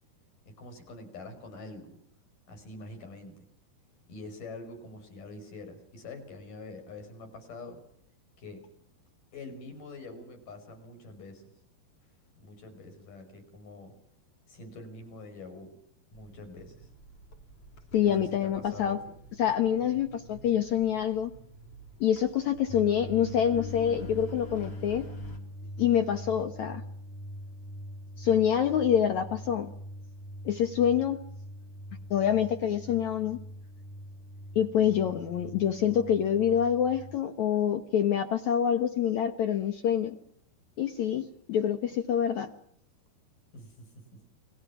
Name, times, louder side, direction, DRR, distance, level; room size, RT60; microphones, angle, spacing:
voice 1, 0.6-2.0 2.5-3.4 4.1-7.8 8.4-8.6 9.3-11.5 12.4-13.9 14.5-15.7 16.1-16.9 18.1-19.1 43.5-44.3, left 3 dB, 50° left, 6 dB, 7.0 m, -45 dB
Engine, 16.1-25.4, right 1 dB, 35° left, 4.0 m, -48 dB
voice 2, 17.9-19.0 19.4-21.3 22.0-25.1 25.8-26.8 28.2-29.7 30.5-31.2 32.1-33.4 34.6-40.2 40.8-42.5, left 9 dB, 70° left, 8 dB, 1.8 m, -26 dB
sound 1, 22.7-37.2, equal, 5° left, 1.4 m, -43 dB
30.0 x 22.0 x 6.0 m, 0.71 s
omnidirectional pair, 4.9 m